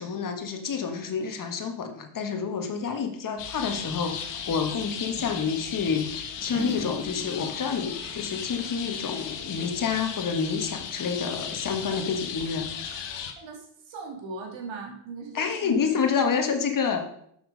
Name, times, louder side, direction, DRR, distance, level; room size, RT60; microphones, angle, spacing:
voice 1, 0.0-12.7 15.3-17.0, left 6 dB, 40° left, 5 dB, 1.7 m, -28 dB
sound 1, 3.4-13.3, left 7 dB, 60° left, 1.3 m, -36 dB
sound 2, 5.2-8.9 9.2-10.4, equal, 20° right, 2.1 m, -42 dB
voice 2, 13.4-15.9, right 4 dB, 65° right, 1 dB, 2.5 m, -39 dB
7.2 x 5.9 x 5.3 m, 0.70 s
supercardioid pair, 80°, 47 cm